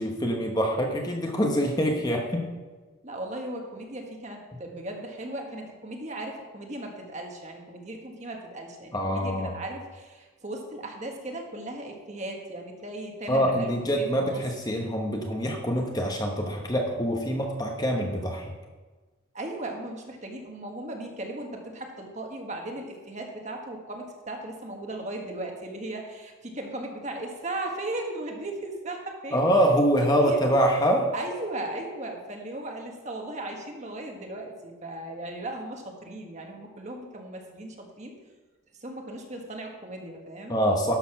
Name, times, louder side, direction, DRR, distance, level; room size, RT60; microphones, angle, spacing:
voice 1, 0.0-2.5 8.9-9.5 13.3-18.5 29.3-31.1 40.5-40.9, equal, 20° left, 1 dB, 1.0 m, -25 dB
voice 2, 3.0-14.4 19.3-29.4 30.2-30.4 31.1-38.1 38.8-40.6, right 1 dB, 35° right, 2 dB, 1.5 m, -37 dB
12.0 x 6.7 x 5.9 m, 1.3 s
head